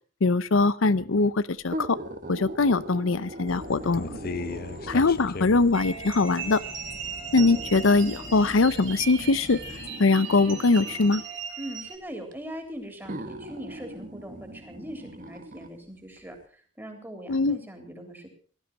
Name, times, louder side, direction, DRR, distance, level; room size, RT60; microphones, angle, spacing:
voice 1, 0.2-2.0 2.3-4.2 4.9-6.6 7.3-9.6 10.0-11.2 17.3-17.6, left 3 dB, 85° left, 16 dB, 0.7 m, -22 dB
sound 1, 1.6-5.3 6.2-6.3 7.4-11.3 12.3-12.4 13.0-15.7 16.2-16.3, right 1 dB, 40° right, 1.5 m, -40 dB
sound 2, 3.5-9.9, left 3 dB, 50° left, 0.7 m, -39 dB
sound 3, 5.7-12.0, right 6 dB, 70° right, 3.8 m, -38 dB
voice 2, 11.6-18.3, equal, 10° right, 5 dB, 3.5 m, -41 dB
17.5 x 12.5 x 6.1 m, 0.43 s
head